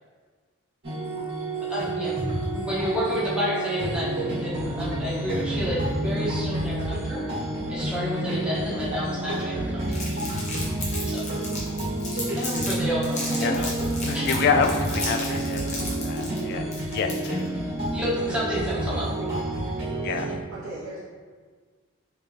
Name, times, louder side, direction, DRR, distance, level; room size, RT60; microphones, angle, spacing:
sound 1, 0.8-20.3, right 1 dB, 50° right, 1.4 m, -29 dB
voice 1, 1.6-2.2 2.5-7.3 7.7-10.0 11.1-11.2 12.1-13.7 14.1-14.2 17.9-19.1, equal, 5° right, -8 dB, 0.9 m, -30 dB
Crumpling crinkling, 9.9-12.7 13.0-17.5, left 2 dB, 35° left, 0.9 m, -34 dB
voice 2, 14.0-17.5 20.0-20.3, left 5 dB, 50° left, 5 dB, 0.3 m, -27 dB
voice 3, 18.9-19.7 20.5-21.0, right 2 dB, 85° right, -6 dB, 0.6 m, -38 dB
3.2 x 3.1 x 3.3 m, 1.5 s
head